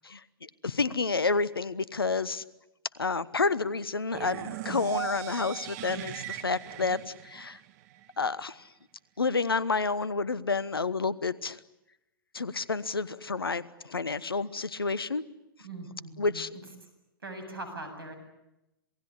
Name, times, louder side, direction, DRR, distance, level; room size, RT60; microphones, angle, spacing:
voice 1, 0.6-2.4 3.0-7.0 7.2-7.6 8.2-8.5 9.2-11.6 12.3-15.2 16.2-16.5, left 4 dB, 80° left, 19 dB, 1.2 m, -29 dB
sound 1, 4.1-8.1, right 15 dB, 45° right, 1.6 m, -39 dB
voice 2, 15.6-16.4 17.2-18.2, right 2 dB, 75° right, 7 dB, 8.0 m, -41 dB
27.5 x 19.0 x 9.8 m, 0.90 s
figure-of-eight pair, 110°, 12 cm